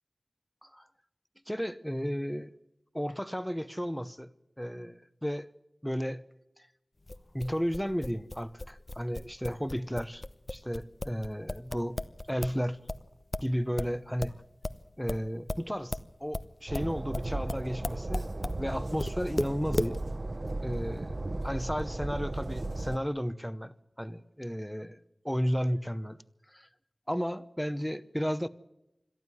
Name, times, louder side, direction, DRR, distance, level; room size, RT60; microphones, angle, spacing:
voice 1, 1.5-2.5 2.9-4.3 4.6-5.5 5.8-6.2 7.3-10.2 10.5-12.0 12.3-12.8 13.4-14.4 15.0-18.3 18.6-20.0 20.6-21.2 21.4-25.0 25.2-26.2 26.5-26.7 27.1-28.5, equal, 5° left, 0.8 m, -33 dB
sound 1, 7.1-12.6 12.9-18.6 19.0-20.0, left 1 dB, 40° left, 0.9 m, -35 dB
Train, 16.7-23.0, right 2 dB, 50° right, 0.9 m, -35 dB
22.0 x 14.0 x 9.6 m
wide cardioid pair, 65°, 0 cm